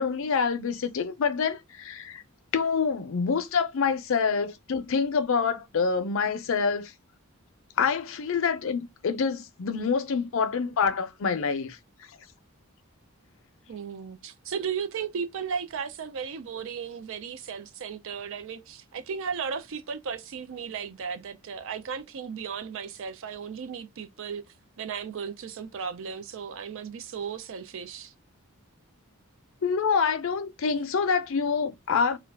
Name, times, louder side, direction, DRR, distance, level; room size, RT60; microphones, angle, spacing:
voice 1, 0.0-2.2 2.5-6.9 7.8-11.8 29.6-32.2, left 5 dB, 65° left, 0.5 m, -26 dB
voice 2, 13.7-24.4 24.8-28.1, right 6 dB, 60° right, 0.4 m, -35 dB
2.3 x 2.2 x 3.3 m
head